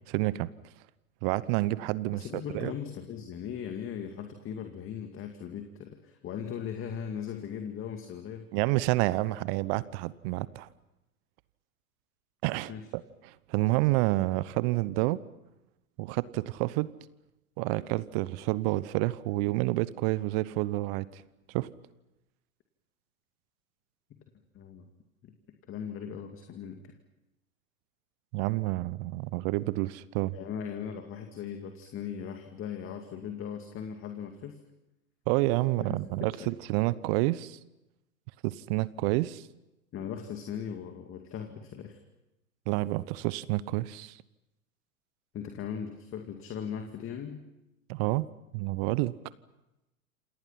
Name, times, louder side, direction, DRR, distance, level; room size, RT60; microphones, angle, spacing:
voice 1, 0.1-0.5 1.2-2.2 2.5-2.7 8.5-10.7 12.4-15.2 16.0-16.9 17.6-21.2 21.5-21.7 28.3-30.4 35.3-37.6 38.4-39.5 42.7-44.2 47.9-48.3 48.5-49.1, right 19 dB, 40° right, 19 dB, 0.9 m, -29 dB
voice 2, 2.1-8.5 9.7-9.8 12.7-12.9 24.5-24.9 25.2-25.4 25.7-26.9 30.3-34.6 35.8-36.6 39.9-42.0 45.3-47.4, left 8 dB, 30° left, 5 dB, 2.3 m, -39 dB
28.0 x 28.0 x 5.9 m, 0.94 s
figure-of-eight pair, 100°, 44 cm